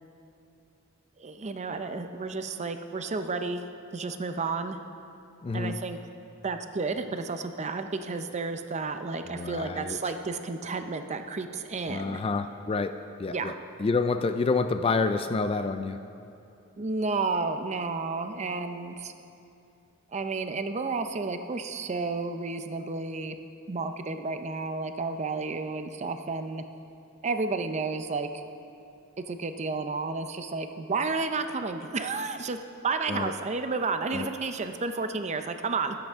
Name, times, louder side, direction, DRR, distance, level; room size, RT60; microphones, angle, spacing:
voice 1, 1.2-3.6 3.9-4.8 5.5-6.0 6.4-12.2 13.3-13.5 16.8-19.1 20.1-23.4 23.7-26.6 27.2-28.4 29.3-32.6 32.8-36.0, right 4 dB, 30° right, 8 dB, 0.5 m, -31 dB
voice 2, 5.4-5.8 9.3-10.0 11.9-13.5 13.8-16.0 33.1-33.3 34.1-34.3, left 4 dB, 25° left, 9 dB, 0.3 m, -28 dB
22.0 x 8.0 x 3.6 m, 2.7 s
head